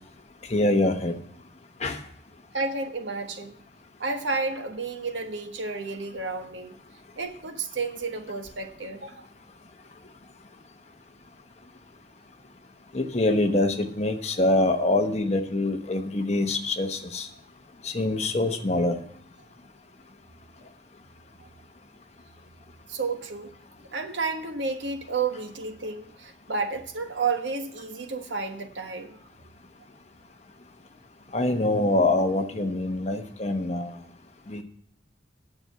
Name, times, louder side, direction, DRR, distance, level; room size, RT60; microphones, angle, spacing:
voice 1, 0.5-1.1 1.8-2.0 12.9-17.3 17.8-18.9 31.3-33.9 34.5-34.6, left 2 dB, 35° left, 6 dB, 1.0 m, -24 dB
voice 2, 2.5-3.6 4.0-6.8 7.2-9.2 20.6-20.7 22.9-23.5 23.9-29.2, right 4 dB, 90° right, 5 dB, 1.4 m, -31 dB
9.6 x 6.8 x 7.9 m, 0.66 s
head